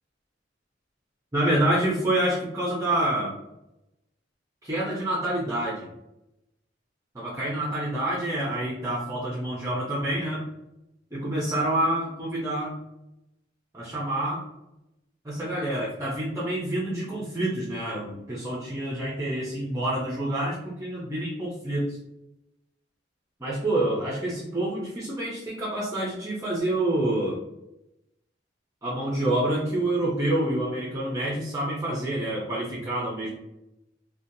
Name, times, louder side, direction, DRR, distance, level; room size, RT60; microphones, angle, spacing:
voice 1, 1.3-3.3 4.6-5.9 7.1-10.4 11.1-12.7 13.7-14.4 15.2-22.0 23.4-27.4 28.8-33.4, right 1 dB, 15° right, -6 dB, 0.5 m, -27 dB
2.7 x 2.2 x 2.6 m, 0.88 s
head